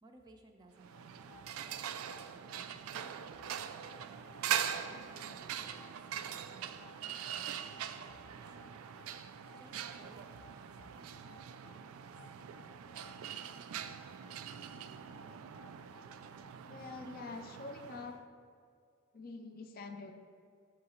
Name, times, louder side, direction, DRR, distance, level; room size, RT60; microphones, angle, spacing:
voice 1, 0.0-2.0 2.3-3.6 4.5-8.8 9.5-12.1, right 1 dB, 20° right, 3 dB, 0.4 m, -61 dB
sound 1, 0.8-16.6, left 2 dB, 20° left, 0.8 m, -61 dB
sound 2, 0.8-18.2, right 8 dB, 85° right, 0.3 m, -42 dB
voice 2, 16.6-18.2 19.1-20.1, left 3 dB, 45° left, 6 dB, 0.4 m, -45 dB
7.7 x 3.8 x 4.2 m, 2.2 s
head